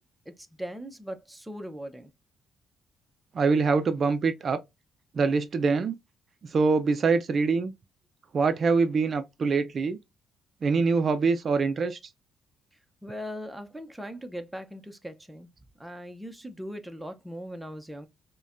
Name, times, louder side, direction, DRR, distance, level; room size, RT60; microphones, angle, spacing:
voice 1, 0.3-2.1 13.0-15.5 15.8-18.1, equal, 5° right, 0.6 m, -39 dB
voice 2, 3.3-4.6 5.1-5.9 6.4-7.7 8.3-10.0 10.6-12.0, right 4 dB, 45° right, 0.4 m, -24 dB
5.1 x 2.2 x 2.5 m
cardioid pair, 90°, 0 cm